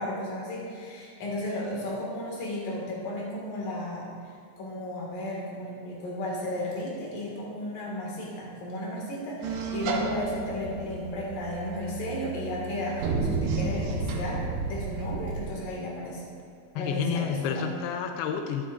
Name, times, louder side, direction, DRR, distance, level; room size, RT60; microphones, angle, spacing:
voice 1, 0.0-4.1 4.6-16.2 16.7-17.7, left 1 dB, 55° left, -3 dB, 3.1 m, -34 dB
sound 1, 9.4-15.6, right 4 dB, 75° right, 2.5 m, -32 dB
voice 2, 16.8-18.7, left 8 dB, 90° left, 5 dB, 2.3 m, -30 dB
12.5 x 11.0 x 2.5 m, 2.3 s
omnidirectional pair, 5.3 m